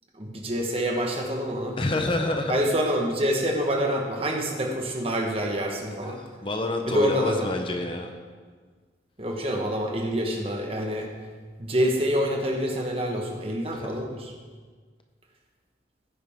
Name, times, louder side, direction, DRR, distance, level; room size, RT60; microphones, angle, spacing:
voice 1, 0.2-1.8 2.5-6.2 6.8-7.5 9.2-11.1 11.6-14.3, equal, 35° right, 1 dB, 1.4 m, -26 dB
voice 2, 1.8-2.6 6.0-8.1 13.7-13.9, left 2 dB, 30° left, 4 dB, 0.8 m, -28 dB
15.5 x 9.7 x 3.7 m, 1.5 s
head